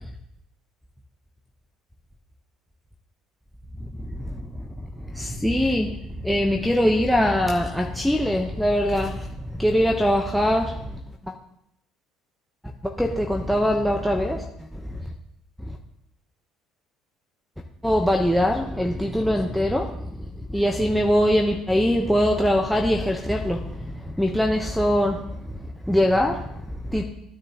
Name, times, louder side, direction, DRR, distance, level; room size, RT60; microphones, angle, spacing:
voice 1, 3.8-11.3 12.8-15.1 15.6-15.8 17.8-25.6 25.9-27.0, equal, ahead, 1 dB, 0.9 m, -23 dB
10.0 x 9.6 x 2.9 m, 0.78 s
hypercardioid pair, 65°, 0 cm